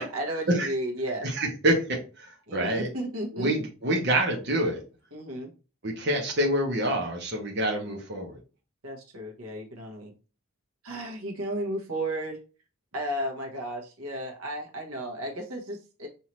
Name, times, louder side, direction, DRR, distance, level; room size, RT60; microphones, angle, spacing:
voice 1, 0.0-1.3 2.5-3.6 5.1-5.5 8.8-10.1 10.8-12.4 12.9-16.1, right 1 dB, 90° right, 1.1 m, -33 dB
voice 2, 1.2-2.9 3.3-4.8 5.8-8.4, right 1 dB, 50° right, 1.1 m, -27 dB
5.6 x 2.7 x 3.1 m
head